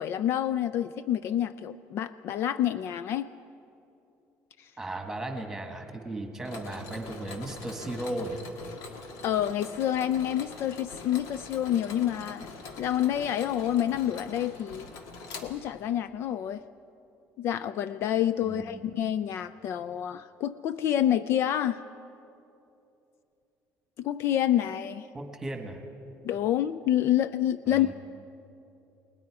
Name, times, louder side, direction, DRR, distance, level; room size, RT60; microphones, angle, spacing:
voice 1, 0.0-3.3 4.6-4.7 9.2-12.4 12.8-14.9 15.4-16.6 17.4-21.8 24.0-25.1 26.2-27.9, left 11 dB, 50° left, 14 dB, 0.4 m, -28 dB
voice 2, 4.8-8.4 18.4-18.8 25.1-25.8 27.7-27.9, right 1 dB, 5° right, 4 dB, 1.6 m, -36 dB
Mechanisms, 6.4-16.0, left 4 dB, 80° left, 1.8 m, -44 dB
29.5 x 20.0 x 4.8 m, 2.8 s
cardioid pair, 180°, 5 cm